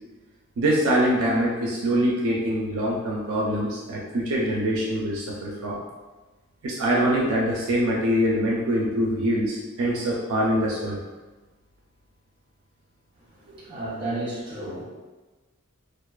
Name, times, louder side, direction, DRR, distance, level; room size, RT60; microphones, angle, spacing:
voice 1, 0.6-5.8 6.6-11.0 13.5-13.6, equal, 70° right, -3 dB, 0.4 m, -24 dB
voice 2, 13.6-14.8, right 2 dB, 25° right, -8 dB, 0.9 m, -32 dB
2.4 x 2.3 x 2.2 m, 1.2 s
head